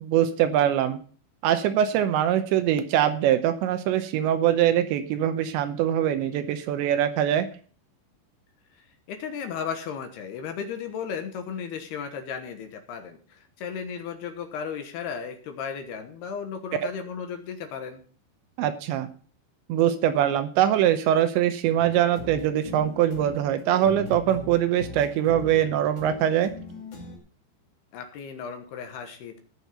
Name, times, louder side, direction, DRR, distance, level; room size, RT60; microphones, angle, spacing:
voice 1, 0.0-1.0 1.4-7.5 18.6-19.1 19.7-26.5, right 10 dB, 80° right, 9 dB, 3.0 m, -23 dB
voice 2, 9.1-18.0 27.9-29.4, left 7 dB, 70° left, 6 dB, 3.0 m, -35 dB
sound 1, 21.8-27.2, left 2 dB, 40° left, 2.8 m, -41 dB
17.5 x 6.4 x 5.4 m, 0.42 s
omnidirectional pair, 5.2 m